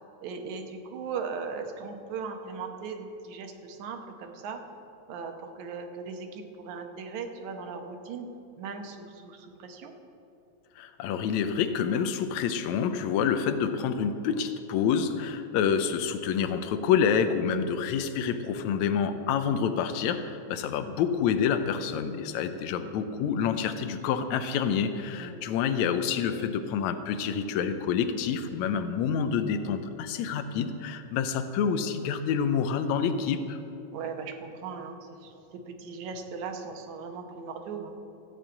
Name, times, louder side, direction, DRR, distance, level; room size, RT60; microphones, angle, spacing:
voice 1, 0.2-4.6 5.1-8.3 8.6-10.0 25.1-25.5 33.9-37.9, right 5 dB, 80° right, 5 dB, 2.4 m, -38 dB
voice 2, 10.8-33.6, left 7 dB, 80° left, 9 dB, 2.0 m, -28 dB
15.5 x 5.4 x 8.5 m, 2.8 s
omnidirectional pair, 3.3 m